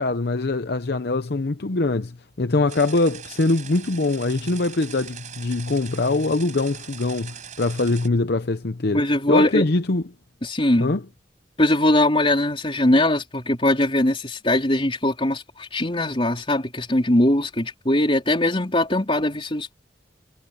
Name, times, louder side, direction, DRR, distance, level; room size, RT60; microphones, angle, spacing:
voice 1, 0.0-10.0 10.8-11.0, left 2 dB, 60° left, 0.7 m, -23 dB
sound 1, 2.7-8.1, right 9 dB, 40° right, 7.9 m, -41 dB
voice 2, 8.9-9.6 10.4-10.9 11.6-19.7, left 1 dB, 30° left, 4.1 m, -21 dB
head